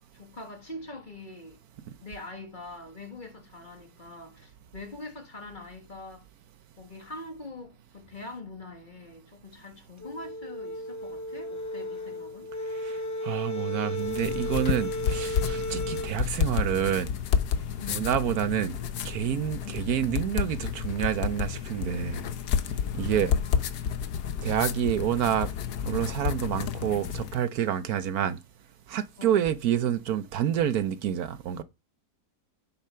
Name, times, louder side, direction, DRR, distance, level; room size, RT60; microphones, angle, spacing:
voice 1, 0.1-1.6 2.0-6.3 6.8-12.5 17.8-18.1 19.6-19.9 22.9-23.7 29.2-29.4, left 2 dB, 30° left, 2.1 m, -43 dB
sound 1, 10.0-16.1, left 1 dB, 15° left, 0.9 m, -34 dB
voice 2, 13.2-17.1 17.9-18.8 19.0-22.2 22.9-23.3 24.4-25.5 25.8-28.4 28.9-31.6, right 10 dB, 70° right, 1.2 m, -28 dB
sound 2, 14.0-27.4, left 7 dB, 80° left, 1.4 m, -30 dB
10.0 x 6.9 x 5.6 m
omnidirectional pair, 1.7 m